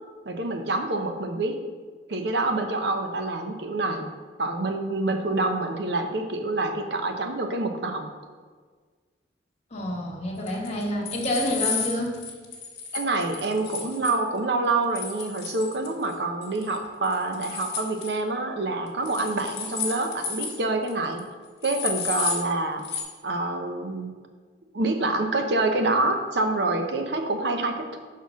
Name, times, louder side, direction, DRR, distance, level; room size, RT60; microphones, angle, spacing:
voice 1, 0.2-1.6 2.1-4.1 4.4-8.1 12.9-21.2 21.6-22.8 23.2-24.1 24.7-28.0, right 2 dB, 65° right, 5 dB, 0.8 m, -26 dB
voice 2, 9.7-12.2, left 1 dB, 35° left, -2 dB, 1.3 m, -28 dB
sound 1, 10.5-14.2 14.9-16.1 16.4-16.8 17.0-18.1 19.0-20.6 20.9-21.0 21.2-21.3 21.6-22.4 22.8-23.0, left 6 dB, 65° left, 1.3 m, -32 dB
5.5 x 4.3 x 6.2 m, 1.5 s
head